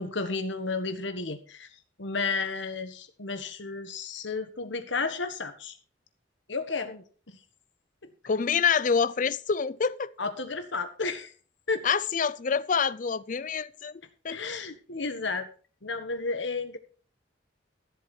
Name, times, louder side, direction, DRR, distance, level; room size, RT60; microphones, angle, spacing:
voice 1, 0.0-1.7 2.0-5.8 6.5-7.4 8.0-8.1 10.2-11.3 11.7-11.9 14.3-15.5 15.8-16.8, left 4 dB, 70° left, 1.5 m, -32 dB
voice 2, 8.3-10.1 11.8-14.4, left 6 dB, 40° left, 0.5 m, -27 dB
13.5 x 8.1 x 4.4 m
head